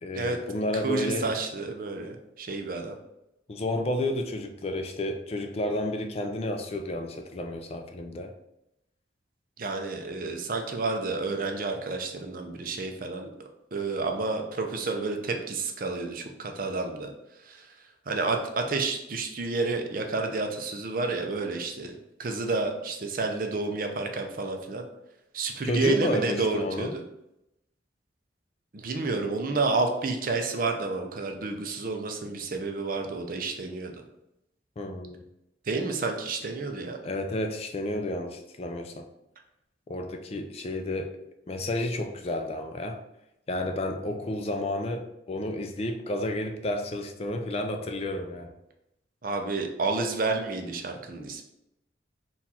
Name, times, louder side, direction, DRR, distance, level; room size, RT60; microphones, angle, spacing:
voice 1, 0.0-1.3 3.5-8.3 25.7-26.9 34.8-35.2 37.0-39.0 39.9-41.2 41.5-43.0 43.5-48.5, left 1 dB, 35° left, 5 dB, 0.4 m, -31 dB
voice 2, 0.8-3.0 9.6-13.3 13.7-17.1 17.4-17.7 18.1-21.9 22.2-24.8 25.3-27.0 28.7-33.9 35.7-37.0 49.2-51.4, right 3 dB, 50° right, 4 dB, 0.5 m, -30 dB
4.2 x 2.4 x 4.1 m, 0.87 s
head